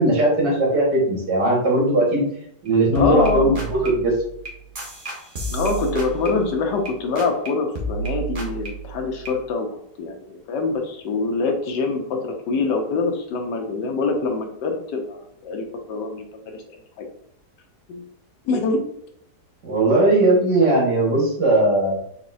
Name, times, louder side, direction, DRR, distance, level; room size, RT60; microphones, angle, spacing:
voice 1, 0.0-2.3 2.6-4.1 19.6-22.0, right 1 dB, 75° right, -3 dB, 2.2 m, -18 dB
sound 1, 2.7-2.8 2.9-6.9 7.2-7.5 7.7-9.4, right 3 dB, 35° right, 1.0 m, -30 dB
voice 2, 2.9-3.6 5.5-9.7 10.0-16.6 17.0-17.1 17.9-18.1 18.4-18.8, left 4 dB, 80° left, 3 dB, 1.4 m, -25 dB
4.2 x 4.0 x 2.6 m, 0.71 s
omnidirectional pair, 1.8 m